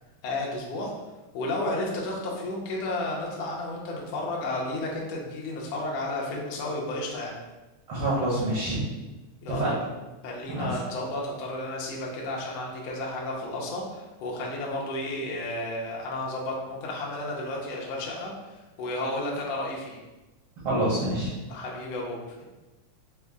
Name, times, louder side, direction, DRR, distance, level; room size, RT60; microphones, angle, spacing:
voice 1, 0.2-0.9 1.3-7.4 9.4-9.8 10.2-20.0 21.5-22.4, left 2 dB, 80° left, -2 dB, 1.5 m, -32 dB
voice 2, 7.9-8.8 9.6-9.7 10.5-10.7 20.6-21.3, right 1 dB, 60° right, -8 dB, 1.5 m, -26 dB
5.4 x 2.0 x 3.5 m, 1.1 s
omnidirectional pair, 3.7 m